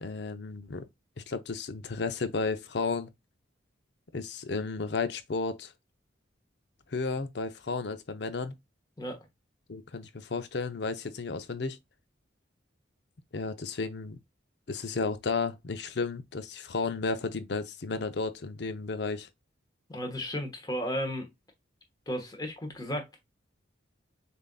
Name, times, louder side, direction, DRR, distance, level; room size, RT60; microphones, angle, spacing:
voice 1, 0.0-0.8 1.2-3.1 4.1-5.7 6.9-8.5 9.7-11.8 13.3-14.2 14.7-19.3, left 4 dB, 60° left, 0.6 m, -33 dB
voice 2, 19.9-21.3 22.1-23.3, equal, 20° left, 1.1 m, -34 dB
6.7 x 2.6 x 2.2 m
head